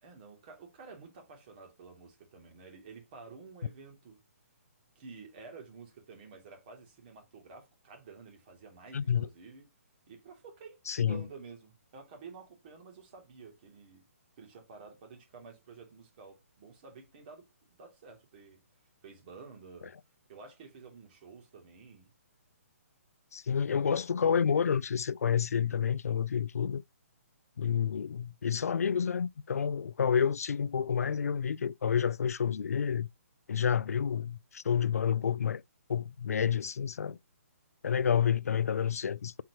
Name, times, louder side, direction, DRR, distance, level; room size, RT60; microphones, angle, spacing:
voice 1, 0.0-4.2 4.9-9.7 10.1-10.8 11.1-14.1 14.4-18.6 19.0-19.9 20.3-22.1 38.1-38.3, right 4 dB, 40° right, 2.7 m, -51 dB
voice 2, 8.9-9.3 10.9-11.2 23.3-26.8 27.6-33.1 33.5-35.6 35.9-37.2 37.8-39.4, left 7 dB, 80° left, 0.4 m, -29 dB
7.2 x 4.6 x 3.0 m
hypercardioid pair, 150°, 8 cm